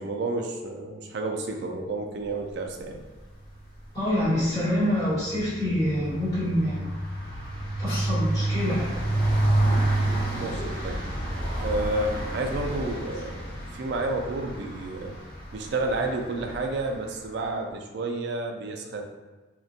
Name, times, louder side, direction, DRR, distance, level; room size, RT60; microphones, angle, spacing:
voice 1, 0.0-3.0 9.6-9.8 10.4-11.0 11.6-15.2 15.5-19.0, right 2 dB, 60° right, 3 dB, 0.3 m, -31 dB
sound 1, 3.2-3.6 3.9-17.0, right 1 dB, 50° left, 0.6 m, -29 dB
voice 2, 3.9-6.9 7.8-8.9 10.6-10.7, equal, 20° left, -13 dB, 1.4 m, -26 dB
2.4 x 2.1 x 2.6 m, 1.2 s
head